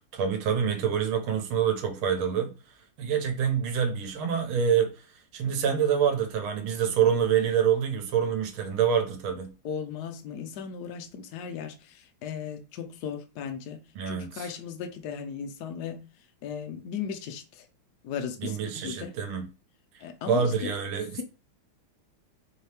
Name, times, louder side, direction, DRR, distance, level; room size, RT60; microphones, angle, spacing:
voice 1, 0.1-2.5 3.0-5.1 5.3-9.5 13.9-14.5 18.4-19.5 20.3-21.2, right 8 dB, 90° right, 1.7 m, -26 dB
voice 2, 9.6-16.0 16.4-17.7 18.0-19.1 20.0-20.7, left 7 dB, 70° left, 1.0 m, -37 dB
4.4 x 2.8 x 3.3 m
omnidirectional pair, 2.2 m